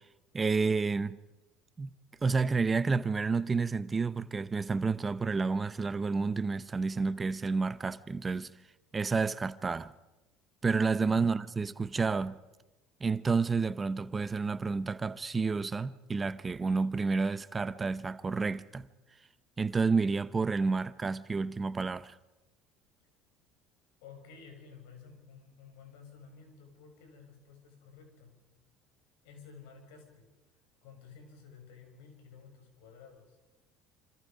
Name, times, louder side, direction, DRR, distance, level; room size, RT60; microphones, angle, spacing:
voice 1, 0.3-1.2 1.8-1.9 2.2-8.5 8.9-9.9 10.6-12.4 13.0-18.9 19.6-22.1, right 4 dB, 25° right, 0.9 m, -30 dB
voice 2, 11.0-11.4 24.0-28.4 29.2-30.3 30.8-33.4, left 6 dB, 80° left, 6.3 m, -53 dB
27.5 x 26.0 x 5.2 m
hypercardioid pair, 80°, 0 cm